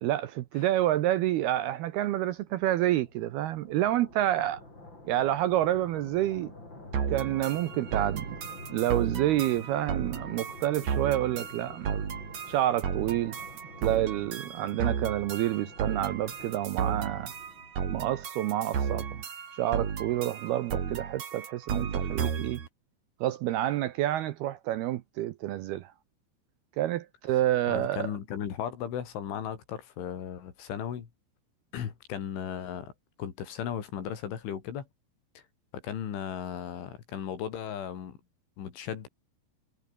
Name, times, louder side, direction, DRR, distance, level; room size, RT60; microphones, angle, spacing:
voice 1, 0.0-4.6 5.0-6.5 7.1-8.4 8.7-12.0 12.5-13.4 13.8-17.3 17.9-19.2 19.5-22.6 23.2-25.9 26.8-28.1, right 13 dB, 75° right, 2.4 m, -28 dB
sound 1, 1.8-18.0, left 2 dB, 25° left, 8.5 m, -48 dB
sound 2, 6.9-22.7, right 7 dB, 45° right, 3.4 m, -34 dB
voice 2, 27.7-31.1 31.7-32.9 33.2-34.9 35.4-35.5 35.7-38.2 38.6-39.1, left 9 dB, 80° left, 5.8 m, -36 dB
omnidirectional pair, 5.4 m